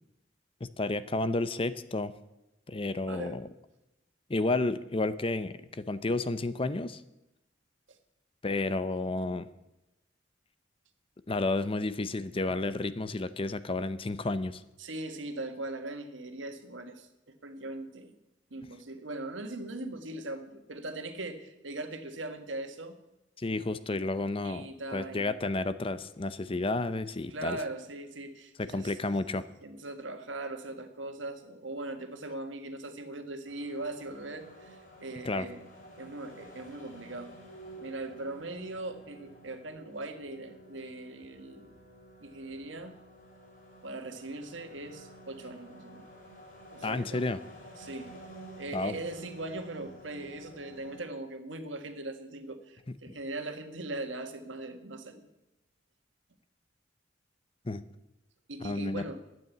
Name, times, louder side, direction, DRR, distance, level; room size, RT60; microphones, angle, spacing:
voice 1, 0.6-2.1 2.7-3.5 4.3-7.0 8.4-9.5 11.3-14.6 23.4-24.7 24.9-27.6 28.6-29.5 35.2-35.5 46.8-47.4 48.7-48.9 53.1-53.2 57.6-57.8 58.6-59.1, left 2 dB, 30° left, 13 dB, 0.6 m, -31 dB
voice 2, 3.1-3.4 7.9-8.0 14.8-18.2 18.5-23.0 24.4-25.3 27.3-29.1 29.6-35.6 36.0-37.3 37.8-41.7 42.2-43.0 43.8-46.1 46.7-47.2 47.8-48.1 48.6-55.3 58.5-59.2, right 2 dB, 85° right, 6 dB, 1.7 m, -40 dB
sound 1, 33.5-51.0, right 1 dB, 50° left, 4.0 m, -51 dB
12.5 x 9.2 x 8.4 m, 0.94 s
head